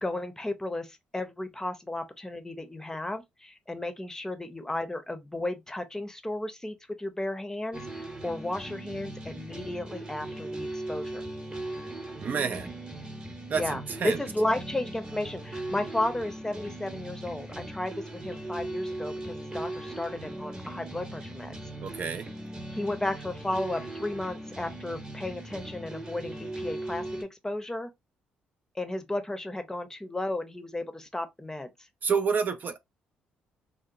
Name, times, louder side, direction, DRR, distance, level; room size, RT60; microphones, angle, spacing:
voice 1, 0.0-11.2 13.5-21.5 22.7-27.9 28.7-31.7, left 1 dB, 15° left, 0.6 m, -34 dB
sound 1, 7.7-27.2, right 1 dB, 25° right, 0.8 m, -39 dB
voice 2, 12.2-12.8 13.5-14.2 21.8-22.3 32.0-32.8, right 6 dB, 45° right, 0.3 m, -29 dB
2.8 x 2.1 x 2.5 m
hypercardioid pair, 50°, 4 cm